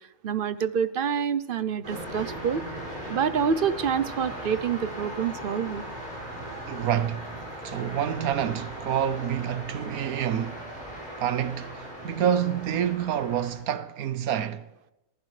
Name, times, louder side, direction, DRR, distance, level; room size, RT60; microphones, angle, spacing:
voice 1, 0.2-2.6 3.1-5.8, right 7 dB, 55° right, 0.7 m, -27 dB
sound 1, 1.8-13.5, right 1 dB, 35° right, 5.7 m, -38 dB
voice 2, 6.7-7.4 7.6-10.7 11.2-14.7, right 9 dB, 85° right, 1.3 m, -28 dB
29.0 x 15.0 x 3.2 m
omnidirectional pair, 1.5 m